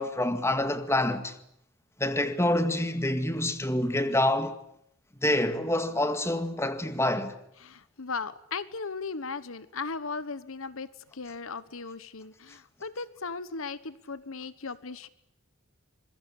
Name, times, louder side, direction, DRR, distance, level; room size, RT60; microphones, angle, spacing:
voice 1, 0.0-1.3 2.0-4.6 5.2-7.3, left 1 dB, 15° left, 2.0 m, -27 dB
voice 2, 7.6-15.1, left 4 dB, 75° left, 1.2 m, -37 dB
26.0 x 22.5 x 8.9 m
head